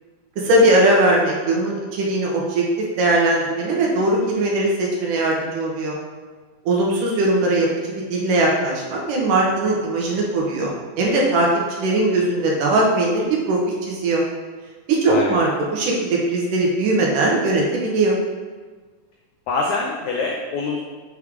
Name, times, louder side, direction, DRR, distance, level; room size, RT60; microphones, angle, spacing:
voice 1, 0.4-2.7 3.0-6.0 6.7-7.7 7.9-11.5 11.8-14.2 14.9-18.2, right 2 dB, 70° right, -2 dB, 2.5 m, -20 dB
voice 2, 15.1-15.4 19.5-20.8, left 3 dB, 80° left, 0 dB, 1.6 m, -24 dB
6.3 x 6.3 x 3.7 m, 1.4 s
omnidirectional pair, 4.1 m